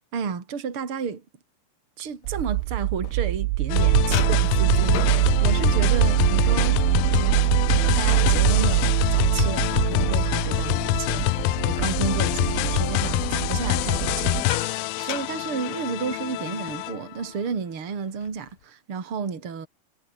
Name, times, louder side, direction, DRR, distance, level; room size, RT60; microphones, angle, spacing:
voice 1, 0.1-1.2 2.0-7.4 7.7-19.7, right 6 dB, 35° right, 3.9 m, -32 dB
sound 1, 2.2-3.7 4.1-11.9 12.3-12.6 13.8-16.4 16.7-16.9 17.2-17.5 18.0-18.6, left 11 dB, 60° left, 2.0 m, -38 dB
sound 2, 2.3-14.4, right 21 dB, 85° right, 2.6 m, -23 dB
sound 3, 3.7-17.2, left 21 dB, 85° left, 2.1 m, -26 dB
omnidirectional pair, 4.7 m